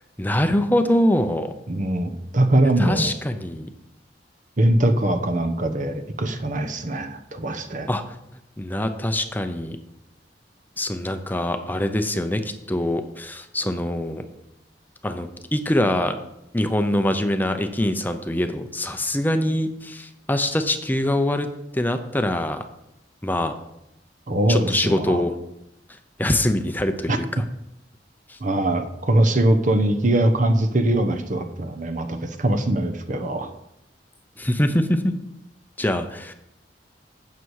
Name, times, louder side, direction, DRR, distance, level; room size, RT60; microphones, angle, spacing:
voice 1, 0.2-1.5 2.8-3.7 7.9-8.0 8.6-9.8 10.8-14.2 15.0-16.1 16.5-22.6 23.2-23.5 24.5-25.3 26.2-27.4 28.3-28.4 34.4-35.1 35.8-36.3, left 1 dB, 10° left, 7 dB, 0.7 m, -24 dB
voice 2, 1.7-3.1 4.6-7.9 24.3-25.2 27.1-27.2 28.4-33.5, right 1 dB, 45° right, 7 dB, 1.0 m, -22 dB
12.0 x 8.3 x 4.8 m, 0.83 s
head